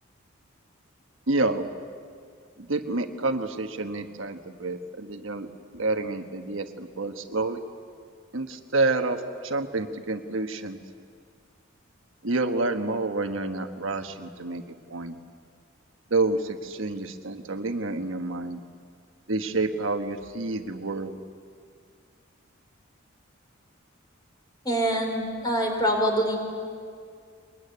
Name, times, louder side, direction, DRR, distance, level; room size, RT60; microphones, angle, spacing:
voice 1, 1.3-1.7 2.6-5.5 5.7-7.6 8.3-10.8 12.2-14.6 14.9-15.2 16.1-18.6 19.3-21.2, right 2 dB, 75° right, 6 dB, 1.3 m, -28 dB
voice 2, 24.6-26.4, equal, 20° left, 2 dB, 4.3 m, -25 dB
23.5 x 21.5 x 9.7 m, 2.2 s
head